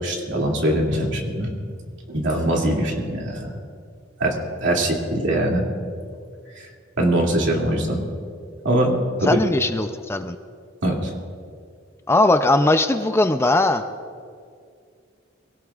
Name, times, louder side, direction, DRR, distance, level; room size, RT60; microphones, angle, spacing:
voice 1, 0.0-1.5 2.1-3.5 4.2-4.4 4.6-5.6 7.0-8.1 8.6-9.4 10.8-11.1, right 1 dB, 65° right, -1 dB, 2.5 m, -22 dB
voice 2, 9.2-10.4 12.1-13.8, left 2 dB, 15° left, 8 dB, 0.4 m, -19 dB
24.0 x 17.0 x 2.4 m, 2.2 s
head